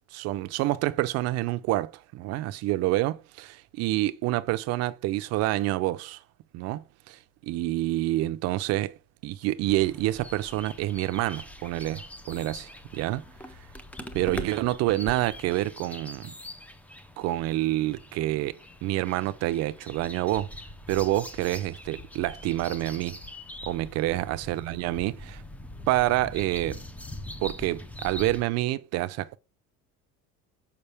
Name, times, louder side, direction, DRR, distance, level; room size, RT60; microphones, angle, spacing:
voice 1, 0.1-6.2 6.5-9.0 9.2-13.2 14.1-16.3 17.2-20.5 20.9-23.2 23.6-25.4 25.9-26.8 27.4-29.4, right 16 dB, 55° right, 0.5 m, -28 dB
sound 1, 9.6-28.4, left 1 dB, 5° left, 0.4 m, -43 dB
6.8 x 5.2 x 3.3 m
cardioid pair, 160°, 31 cm